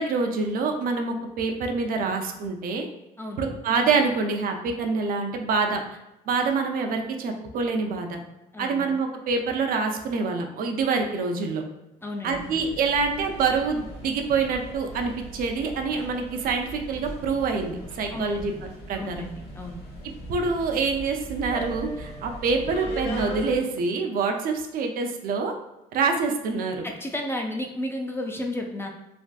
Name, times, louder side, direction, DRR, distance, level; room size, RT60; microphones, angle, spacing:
voice 1, 0.0-2.9 3.4-5.8 6.3-8.2 8.6-11.6 12.2-18.5 18.9-19.2 20.3-25.5 25.9-26.9, right 4 dB, 60° right, 4 dB, 0.5 m, -26 dB
voice 2, 8.5-8.8 12.0-12.5 18.1-18.5 18.9-19.8 26.8-28.9, left 1 dB, 15° left, 2 dB, 0.3 m, -33 dB
sound 1, 12.3-23.6, equal, 80° left, 1.1 m, -39 dB
3.4 x 2.5 x 2.3 m, 0.95 s
cardioid pair, 110°, 17 cm